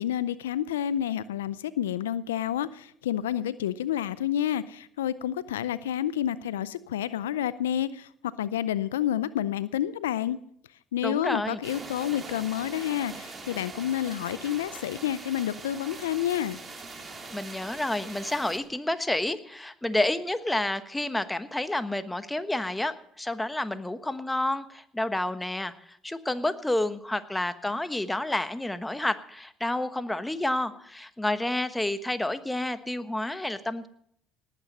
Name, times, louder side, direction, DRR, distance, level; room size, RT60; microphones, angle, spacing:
voice 1, 0.0-8.1 8.4-10.4 10.9-16.6, left 11 dB, 90° left, 17 dB, 0.5 m, -29 dB
voice 2, 11.0-11.6 17.3-33.9, left 1 dB, 10° left, 11 dB, 1.2 m, -29 dB
sound 1, 11.6-18.6, right 3 dB, 30° right, 3.2 m, -42 dB
18.5 x 9.2 x 5.4 m, 0.68 s
hypercardioid pair, 65°, 0 cm